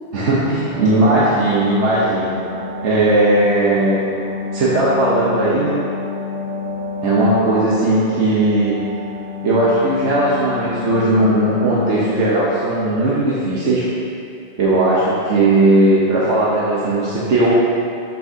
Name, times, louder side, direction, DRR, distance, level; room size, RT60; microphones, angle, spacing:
voice 1, 0.1-2.4 2.8-4.0 4.5-5.8 7.0-8.8 9.4-13.9 14.6-17.5, right 2 dB, 85° right, -8 dB, 1.5 m, -17 dB
sound 1, 0.7-13.8 14.1-14.2, left 4 dB, 10° right, 0.7 m, -30 dB
12.5 x 6.1 x 2.9 m, 2.6 s
omnidirectional pair, 1.2 m